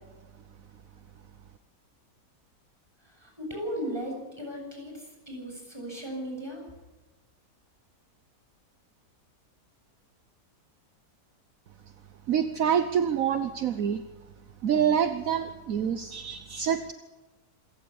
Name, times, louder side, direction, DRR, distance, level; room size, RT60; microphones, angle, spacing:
voice 1, 3.0-6.6, equal, 15° right, 0 dB, 7.8 m, -36 dB
voice 2, 12.3-14.0 14.6-16.9, right 8 dB, 65° right, 9 dB, 1.3 m, -26 dB
27.0 x 16.5 x 7.2 m, 1.1 s
omnidirectional pair, 1.6 m